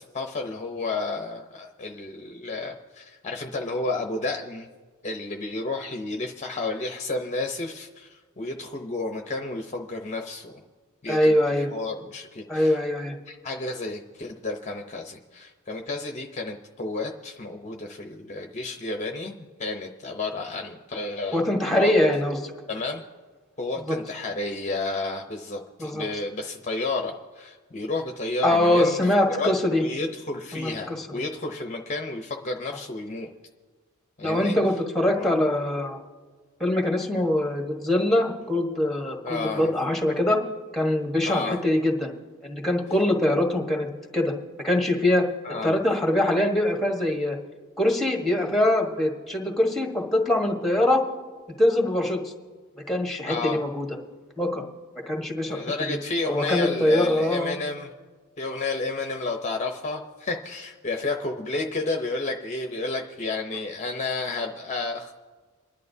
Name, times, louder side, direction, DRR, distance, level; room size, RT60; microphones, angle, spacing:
voice 1, 0.0-4.7 5.0-10.6 11.0-11.4 11.7-12.8 13.3-21.9 22.7-23.0 23.6-29.0 29.4-29.5 29.8-33.3 34.2-34.6 35.1-35.3 39.2-39.7 41.2-41.6 45.4-45.8 53.3-53.6 55.5-57.9 58.4-65.1, left 3 dB, 30° left, 3 dB, 0.7 m, -31 dB
voice 2, 11.1-11.7 12.5-13.2 21.3-22.5 23.9-24.0 25.8-26.0 28.4-29.8 30.5-31.1 34.2-36.0 36.6-40.4 40.7-42.1 42.4-43.9 44.1-44.3 44.6-45.3 45.6-47.4 47.8-51.0 51.6-52.3 52.9-53.9 54.4-54.6 55.1-55.6 56.3-57.6, left 1 dB, ahead, 1 dB, 1.3 m, -23 dB
28.0 x 11.0 x 2.7 m, 1.4 s
head